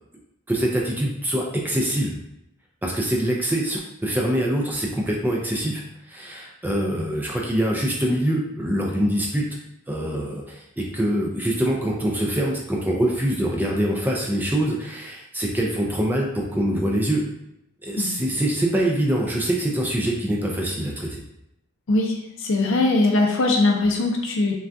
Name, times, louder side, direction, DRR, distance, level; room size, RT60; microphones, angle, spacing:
voice 1, 0.5-2.1 2.8-5.8 6.1-9.4 9.9-17.2 17.8-21.2, right 1 dB, 10° right, -2 dB, 0.3 m, -24 dB
voice 2, 22.4-24.5, left 2 dB, 60° left, 1 dB, 0.5 m, -20 dB
3.3 x 2.3 x 2.5 m, 0.83 s
head